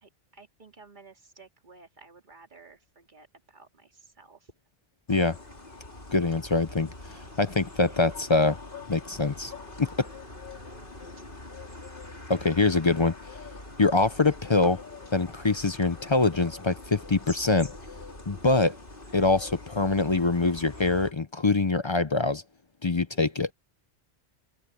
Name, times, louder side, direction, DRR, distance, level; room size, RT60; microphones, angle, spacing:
voice 1, 0.0-4.5 11.5-11.7 23.1-23.2, right 3 dB, 45° right, 2.3 m, -54 dB
sound 1, 5.1-21.1, left 2 dB, 50° left, 4.2 m, -44 dB
voice 2, 6.1-8.6 8.9-9.5 9.8-10.1 12.3-13.1 13.8-14.8 15.1-17.7 18.3-18.8 19.1-22.4 22.8-23.5, left 3 dB, 35° left, 0.5 m, -24 dB
omnidirectional pair, 1.1 m